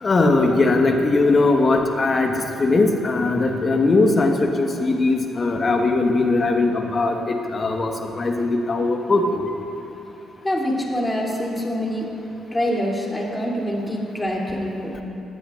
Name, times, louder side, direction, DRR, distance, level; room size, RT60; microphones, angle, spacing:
voice 1, 0.0-9.4, left 3 dB, 40° left, 3 dB, 1.5 m, -20 dB
voice 2, 10.4-12.1 12.5-14.9, equal, 15° left, -2 dB, 3.3 m, -25 dB
19.5 x 14.5 x 2.6 m, 2.8 s
hypercardioid pair, 40°, 0 cm